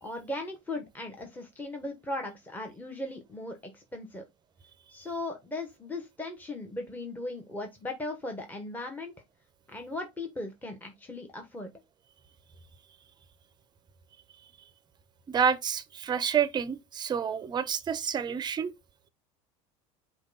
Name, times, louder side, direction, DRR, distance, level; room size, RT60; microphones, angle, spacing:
voice 1, 0.0-4.2 4.9-9.1 9.7-11.7, left 2 dB, 10° left, 1.0 m, -38 dB
voice 2, 15.3-18.7, right 7 dB, 25° right, 0.6 m, -28 dB
5.0 x 2.3 x 3.9 m
supercardioid pair, 105°, 16 cm